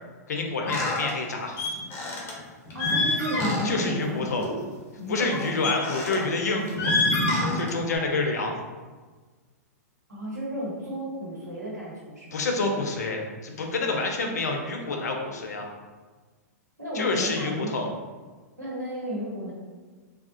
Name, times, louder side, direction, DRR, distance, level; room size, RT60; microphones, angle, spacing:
voice 1, 0.3-1.6 3.6-4.4 5.1-7.0 7.5-8.6 12.3-15.7 16.9-17.9, left 3 dB, 75° left, 2 dB, 0.6 m, -28 dB
sound 1, 0.7-1.1 1.6-2.3 2.7-3.9 4.2-4.5 5.2-6.3 6.7-8.0, left 2 dB, 25° left, 0.8 m, -27 dB
voice 2, 2.7-4.6 5.0-5.7 10.1-12.5 16.8-17.7 18.6-19.5, equal, 85° right, -5 dB, 1.1 m, -33 dB
3.4 x 2.3 x 2.7 m, 1.4 s
hypercardioid pair, 110°, 9 cm